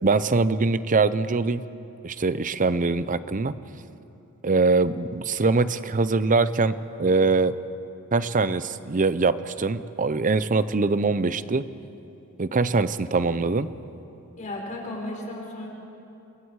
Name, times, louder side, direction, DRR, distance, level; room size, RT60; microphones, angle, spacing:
voice 1, 0.0-1.6 2.0-3.5 4.4-6.7 7.0-7.5 8.1-11.6 12.4-13.7, right 3 dB, 35° right, 14 dB, 0.6 m, -23 dB
voice 2, 14.4-15.7, left 1 dB, 35° left, -1 dB, 4.8 m, -34 dB
29.0 x 23.5 x 4.8 m, 2.8 s
head